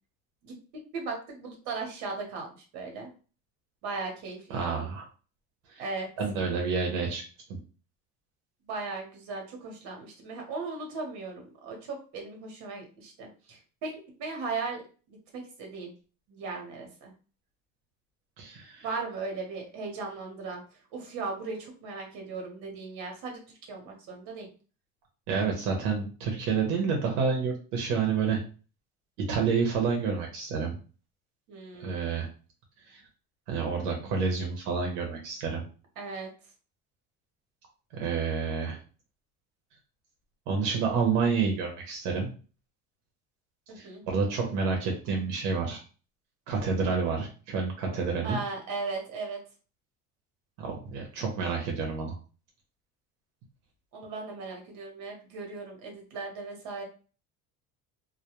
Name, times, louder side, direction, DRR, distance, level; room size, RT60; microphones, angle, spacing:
voice 1, 0.4-2.5 2.7-3.1 3.8-4.9 5.8-6.1 8.7-13.9 14.2-14.8 15.1-15.9 16.3-17.1 18.8-24.5 31.5-32.0 36.0-36.3 43.7-44.0 48.2-49.4 53.9-56.8, right 3 dB, 65° right, 1 dB, 1.0 m, -37 dB
voice 2, 4.5-5.0 6.2-7.2 18.4-18.9 25.3-28.4 29.3-30.8 31.8-32.3 32.9-33.0 33.5-35.6 38.0-38.8 40.5-42.3 43.8-45.8 46.5-48.4 50.6-52.1, right 5 dB, 90° right, 0 dB, 0.8 m, -29 dB
2.2 x 2.2 x 2.9 m, 0.36 s
cardioid pair, 170°, 31 cm